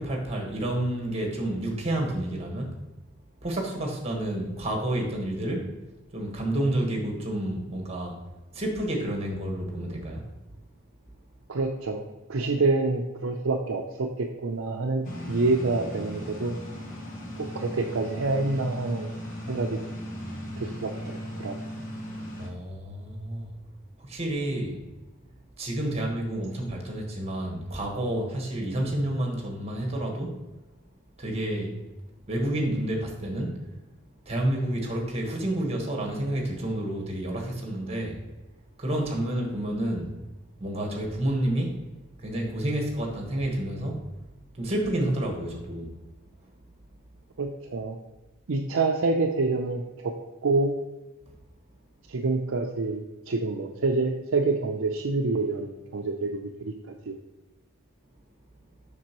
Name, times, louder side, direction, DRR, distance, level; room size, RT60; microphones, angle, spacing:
voice 1, 0.0-2.7 3.4-5.7 6.1-8.2 8.5-10.2 22.4-23.5 24.1-24.8 25.6-30.3 31.2-31.8 32.3-33.6 34.2-38.2 38.8-40.1 40.6-41.7 42.2-44.0 44.6-45.9, right 1 dB, 30° right, 0 dB, 1.4 m, -29 dB
voice 2, 11.5-12.0 12.3-16.5 17.4-19.1 19.5-19.8 20.6-21.6 47.4-48.0 48.5-50.1 50.4-50.8 52.1-56.7 57.1-57.2, right 3 dB, 65° right, 1 dB, 0.5 m, -27 dB
sound 1, 15.0-22.5, equal, 40° left, 1.2 m, -37 dB
7.4 x 6.0 x 3.0 m, 1.1 s
head